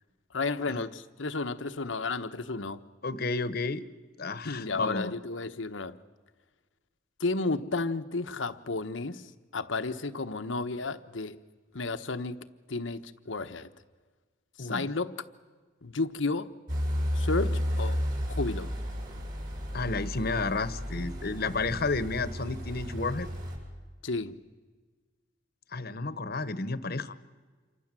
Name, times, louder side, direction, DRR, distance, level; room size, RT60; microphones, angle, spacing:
voice 1, 0.3-2.8 4.4-6.0 7.2-11.4 11.7-13.7 14.6-15.2 15.8-16.5 17.1-18.0 18.4-18.7 24.0-24.4, left 3 dB, 85° left, 1.2 m, -32 dB
voice 2, 3.0-3.8 4.2-5.1 14.6-14.9 19.7-23.3 25.7-27.2, left 3 dB, 55° left, 1.1 m, -31 dB
sound 1, 16.7-23.6, equal, 50° right, 7.1 m, -32 dB
28.0 x 24.5 x 7.6 m
head